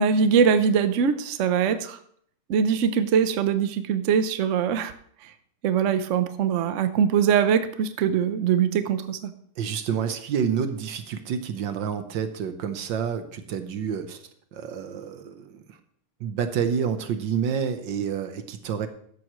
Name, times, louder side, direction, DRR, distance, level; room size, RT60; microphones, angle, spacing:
voice 1, 0.0-2.0 2.5-4.9 5.2-5.3 5.6-9.3, right 7 dB, 85° right, 10 dB, 0.6 m, -22 dB
voice 2, 9.6-14.2 14.5-15.8 16.2-18.9, right 7 dB, 65° right, 9 dB, 1.5 m, -28 dB
13.5 x 11.0 x 3.1 m, 0.62 s
omnidirectional pair, 2.4 m